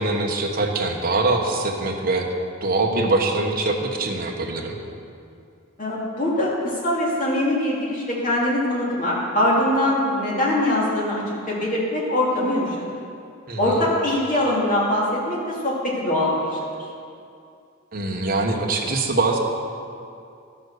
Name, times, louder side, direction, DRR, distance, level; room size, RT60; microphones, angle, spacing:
voice 1, 0.0-2.3 2.6-4.8 13.5-13.8 17.9-19.4, right 2 dB, 45° right, 1 dB, 1.2 m, -23 dB
voice 2, 5.8-12.8 13.6-16.7, left 1 dB, 40° left, -5 dB, 2.7 m, -22 dB
12.0 x 7.2 x 6.5 m, 2.5 s
head